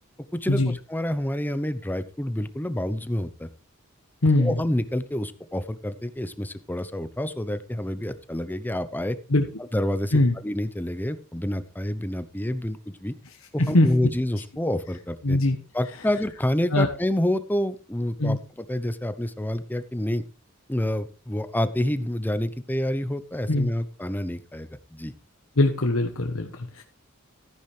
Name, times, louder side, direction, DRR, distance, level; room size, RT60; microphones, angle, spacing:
voice 1, 0.3-3.5 4.4-9.2 9.6-13.1 13.5-15.4 15.7-20.2 20.7-25.1, left 1 dB, 10° left, 12 dB, 0.7 m, -28 dB
voice 2, 4.2-4.6 9.3-9.4 10.1-10.3 13.6-13.9 15.2-15.6 16.7-16.9 18.2-18.4 23.5-23.7 25.6-26.8, left 2 dB, 85° left, 4 dB, 1.3 m, -21 dB
14.0 x 10.0 x 3.3 m, 0.34 s
head